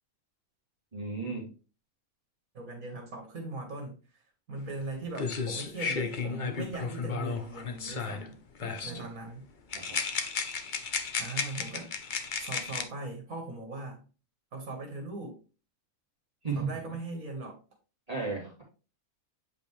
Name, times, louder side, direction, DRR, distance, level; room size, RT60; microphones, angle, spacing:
voice 1, 0.9-1.5 8.8-9.0 9.7-10.0 16.4-16.7 18.1-18.6, right 4 dB, 25° right, -5 dB, 2.4 m, -34 dB
voice 2, 2.5-4.2 4.5-9.5 11.2-11.9 12.4-14.1 14.5-15.4 16.6-17.6, right 2 dB, 70° right, 3 dB, 2.1 m, -40 dB
sound 1, 4.8-4.9 5.1-8.3 8.6-9.0 9.7-12.8, left 5 dB, 40° left, 0.8 m, -34 dB
7.9 x 5.2 x 3.2 m, 0.34 s
omnidirectional pair, 1.5 m